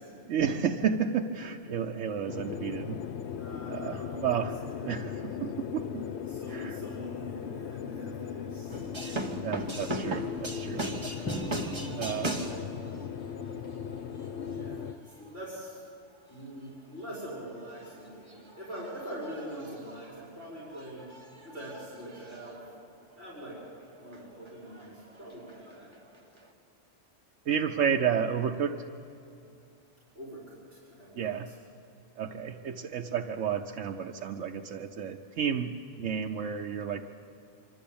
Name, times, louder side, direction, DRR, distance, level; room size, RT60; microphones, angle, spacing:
voice 1, 0.3-3.0 3.7-4.5 4.8-6.1 6.5-6.8 9.0-10.9 12.0-12.5 27.5-28.9 31.2-31.5 32.2-37.0, right 7 dB, 90° right, 3 dB, 1.1 m, -31 dB
sound 1, 2.3-14.9, left 8 dB, 70° left, 1.0 m, -38 dB
voice 2, 3.3-5.6 5.9-8.9 12.2-12.6 14.5-15.9 16.3-21.1 21.4-22.6 23.1-23.6 23.9-25.9 30.2-31.5, right 1 dB, 55° right, -7 dB, 5.4 m, -44 dB
sound 2, 8.7-15.5 16.3-16.8 17.1-17.3 17.6-23.7 24.0-26.5, right 1 dB, 25° right, 1.3 m, -40 dB
Drum, 11.3-13.4, equal, 20° left, 2.5 m, -39 dB
25.0 x 12.5 x 8.7 m, 2.7 s
omnidirectional pair, 1.2 m